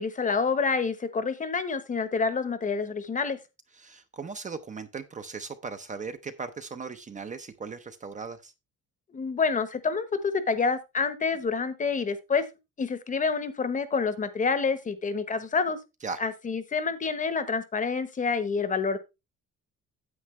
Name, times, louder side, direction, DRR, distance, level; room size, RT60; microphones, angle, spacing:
voice 1, 0.0-3.4 9.1-12.4 12.8-15.8 16.2-19.0, left 5 dB, 25° left, 13 dB, 1.0 m, -28 dB
voice 2, 3.7-8.5 16.0-16.2, right 5 dB, 25° right, 9 dB, 0.6 m, -38 dB
9.5 x 8.4 x 3.1 m, 0.25 s
cardioid pair, 170°, 31 cm